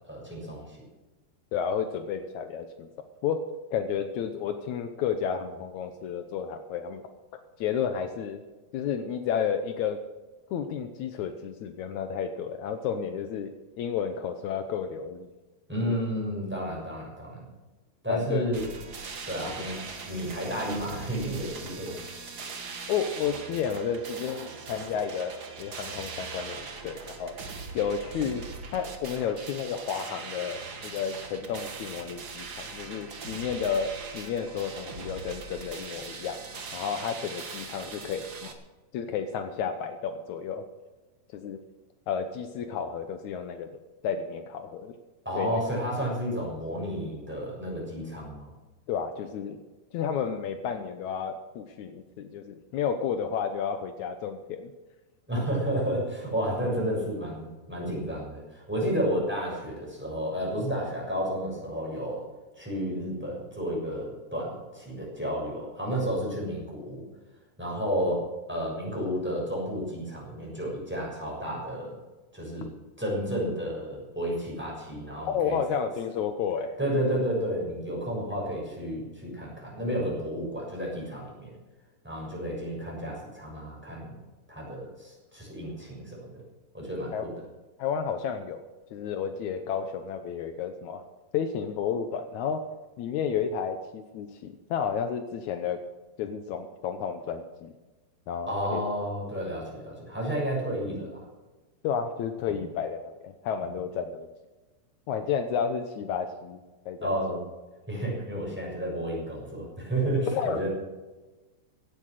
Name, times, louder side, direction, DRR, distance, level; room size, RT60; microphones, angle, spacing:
voice 1, 0.1-0.8 15.7-17.5 18.0-18.7 19.3-22.0 45.2-48.5 55.3-62.2 62.6-67.0 67.6-72.0 72.3-72.7 73.0-75.6 76.8-81.6 82.0-84.2 84.5-86.4 86.7-87.3 98.5-101.2 102.5-102.6 107.0-107.4 107.9-110.7, equal, ahead, -3 dB, 6.2 m, -31 dB
voice 2, 1.5-2.9 3.2-3.4 3.7-7.0 7.6-8.4 8.7-10.0 10.5-13.5 13.8-15.3 15.9-16.0 18.1-18.4 19.4-19.6 22.9-25.3 25.6-27.4 27.7-28.4 28.7-36.4 36.7-38.5 38.9-40.6 41.3-41.6 42.1-43.7 44.0-44.9 45.4-45.6 48.9-49.6 49.9-54.7 55.3-55.4 75.3-76.7 87.1-87.2 87.8-88.6 88.9-91.0 91.3-92.6 93.0-95.8 96.2-97.7 98.3-98.8 101.8-104.3 105.1-107.1 110.3-110.6, left 7 dB, 85° left, 8 dB, 1.6 m, -31 dB
sound 1, 18.5-38.5, right 4 dB, 80° right, 0.9 m, -41 dB
16.5 x 10.5 x 6.5 m, 1.2 s
omnidirectional pair, 4.7 m